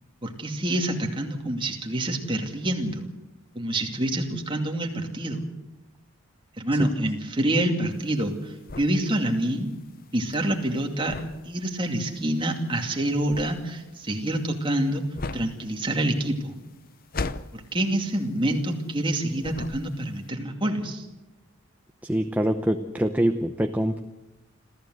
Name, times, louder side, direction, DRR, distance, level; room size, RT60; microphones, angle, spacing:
voice 1, 0.2-3.1 3.5-5.4 6.6-9.8 10.1-11.1 11.4-15.0 15.3-16.6 17.5-21.1, right 1 dB, 25° right, 3 dB, 2.4 m, -27 dB
sound 1, 7.9-19.1 19.4-20.2, left 3 dB, 40° left, 0.7 m, -38 dB
voice 2, 22.0-24.0, right 1 dB, 5° right, 6 dB, 0.7 m, -24 dB
26.5 x 15.0 x 7.9 m, 1.0 s
head